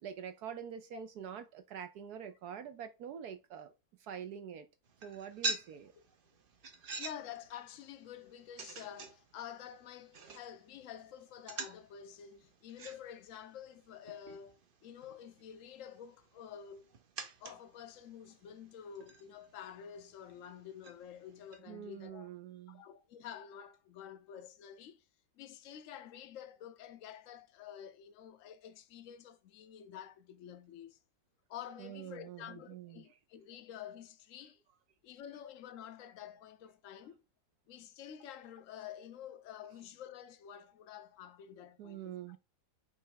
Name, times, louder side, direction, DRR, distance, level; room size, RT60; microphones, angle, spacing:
voice 1, 0.0-3.7 4.0-4.7 5.0-5.9 21.7-22.8 31.8-33.0 41.8-42.4, right 8 dB, 70° right, 1.1 m, -45 dB
sound 1, 4.8-21.6, right 3 dB, 45° right, 0.7 m, -47 dB
voice 2, 7.0-16.8 17.4-22.3 22.7-25.0 25.4-31.0 31.5-34.6 35.0-37.2 37.7-42.4, left 9 dB, 60° left, 1.0 m, -49 dB
5.5 x 3.3 x 5.1 m
omnidirectional pair, 1.9 m